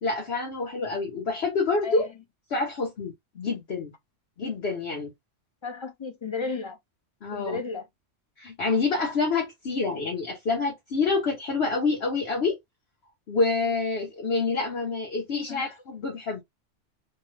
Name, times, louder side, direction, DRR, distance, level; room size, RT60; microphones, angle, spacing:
voice 1, 0.0-2.1 2.5-3.9 4.4-5.1 7.2-7.6 8.4-12.6 13.3-16.4, left 4 dB, 55° left, 1.2 m, -27 dB
voice 2, 5.6-6.8 7.3-7.9 15.5-15.7, left 4 dB, 35° left, 0.5 m, -33 dB
4.4 x 2.3 x 3.2 m
omnidirectional pair, 1.3 m